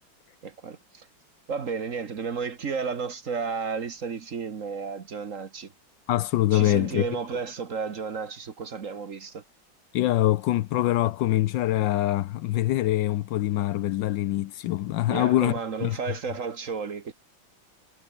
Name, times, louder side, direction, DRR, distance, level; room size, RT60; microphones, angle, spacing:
voice 1, 0.4-1.1 1.5-5.7 6.5-9.4 15.1-17.1, right 5 dB, 45° right, 1.5 m, -32 dB
voice 2, 6.1-7.0 9.9-15.5 15.8-16.0, left 15 dB, 75° left, 1.2 m, -24 dB
omnidirectional pair, 2.2 m